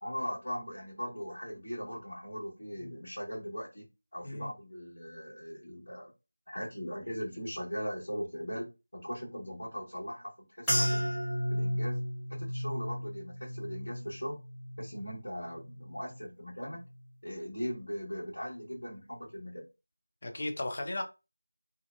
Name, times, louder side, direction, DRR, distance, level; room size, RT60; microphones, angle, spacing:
voice 1, 0.0-3.9 4.1-6.1 6.5-11.1 11.5-12.0 12.3-14.4 14.8-16.8 17.2-19.6, equal, 65° left, 1.4 m, -39 dB
sound 1, 10.7-15.2 15.5-16.2 16.8-17.0, equal, 5° left, 0.8 m, -34 dB
voice 2, 20.2-21.0, left 1 dB, 40° left, 0.6 m, -36 dB
2.5 x 2.1 x 2.6 m
figure-of-eight pair, 170°, 0 cm